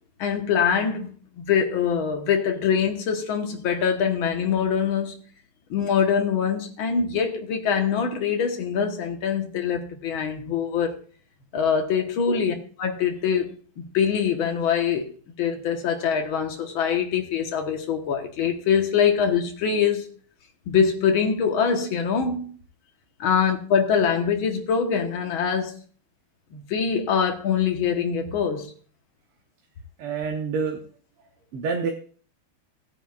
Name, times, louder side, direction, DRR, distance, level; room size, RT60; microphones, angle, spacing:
voice 1, 0.2-5.1 5.7-11.0 11.5-15.1 15.4-20.1 20.7-22.5 23.2-25.8 26.5-28.7, left 7 dB, 70° left, 2.1 m, -24 dB
voice 2, 30.0-30.8 31.5-31.9, right 5 dB, 85° right, 2.0 m, -27 dB
16.5 x 9.0 x 2.4 m
omnidirectional pair, 2.4 m